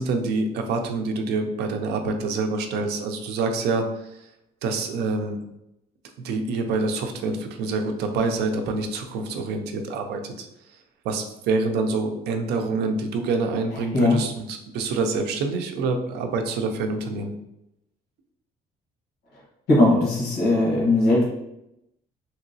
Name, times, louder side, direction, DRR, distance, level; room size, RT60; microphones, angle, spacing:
voice 1, 0.0-3.8 4.6-5.4 6.2-10.5 11.0-17.3, right 3 dB, 80° right, 5 dB, 0.5 m, -26 dB
voice 2, 13.7-14.2 19.7-21.2, left 2 dB, 70° left, -4 dB, 1.2 m, -19 dB
2.9 x 2.9 x 2.6 m, 0.84 s
cardioid pair, 110°, 17 cm